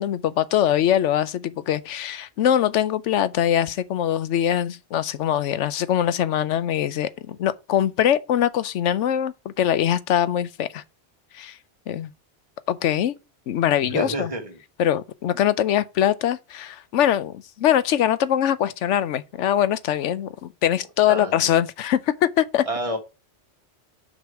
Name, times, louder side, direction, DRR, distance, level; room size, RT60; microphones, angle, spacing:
voice 1, 0.0-10.8 11.3-11.6 11.9-12.1 12.7-13.2 13.5-14.3 14.8-22.6, left 10 dB, 85° left, 1.0 m, -22 dB
voice 2, 13.9-14.6 21.1-21.5 22.6-23.0, right 1 dB, 30° right, 1.8 m, -29 dB
6.3 x 5.2 x 4.7 m
omnidirectional pair, 1.2 m